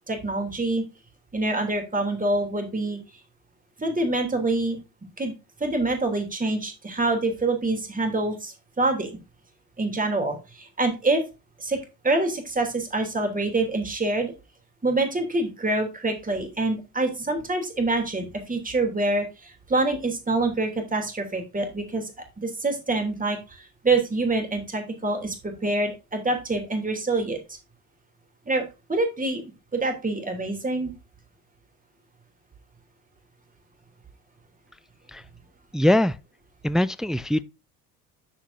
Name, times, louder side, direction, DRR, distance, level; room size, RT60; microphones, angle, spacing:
voice 1, 0.1-0.8 1.3-3.0 3.8-4.8 5.2-5.3 5.6-9.1 9.8-11.2 11.6-11.8 12.0-14.3 14.8-22.1 22.4-27.4 28.5-28.6 28.9-29.4 29.7-30.9, right 2 dB, 15° right, 3.1 m, -26 dB
voice 2, 35.7-36.1 36.6-37.4, left 1 dB, ahead, 0.3 m, -21 dB
10.0 x 7.1 x 2.7 m
hypercardioid pair, 60°, 46 cm